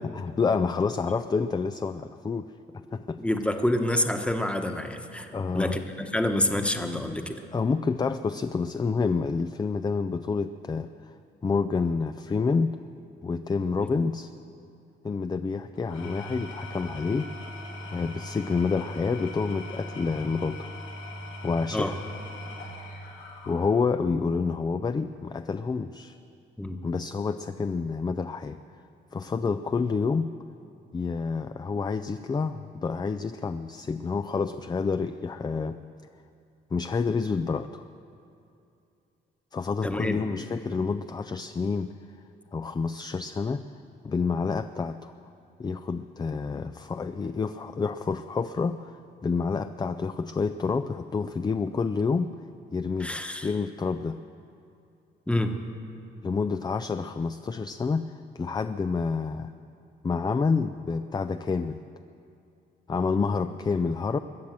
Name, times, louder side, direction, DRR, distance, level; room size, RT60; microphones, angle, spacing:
voice 1, 0.0-3.2 5.3-5.8 7.5-11.2 11.4-12.8 13.2-14.3 15.0-17.3 17.9-20.7 21.4-22.0 23.5-26.2 26.8-28.6 29.1-30.3 30.9-35.8 36.7-37.8 39.5-41.9 42.5-43.7 44.0-45.1 45.6-52.3 52.7-54.2 56.2-59.5 60.0-61.8 62.9-64.2, left 4 dB, 20° left, 10 dB, 0.4 m, -28 dB
voice 2, 3.2-5.3 5.5-7.4 13.8-13.9 21.7-21.9 26.6-26.8 39.8-40.2 53.0-53.5 55.3-55.5, left 1 dB, 5° left, 5 dB, 1.1 m, -27 dB
Engine / Tools, 15.8-24.1, left 1 dB, 90° left, 2.3 m, -40 dB
21.5 x 7.3 x 7.5 m, 2.6 s
cardioid pair, 90°, 20 cm